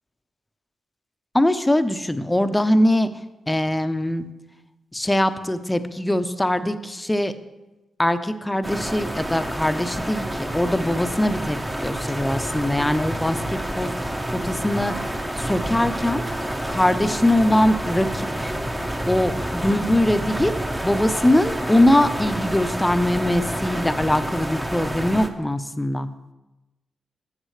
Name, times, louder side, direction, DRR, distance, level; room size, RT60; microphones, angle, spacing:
voice 1, 1.3-3.1 3.5-4.3 4.9-7.3 8.0-13.9 14.3-15.0 15.4-16.2 16.7-18.5 19.1-20.5 20.8-26.1, left 1 dB, 15° left, 10 dB, 0.7 m, -22 dB
sound 1, 8.6-25.3, right 1 dB, 15° right, 1.0 m, -28 dB
12.5 x 7.4 x 3.3 m, 1.1 s
supercardioid pair, 45°, 0 cm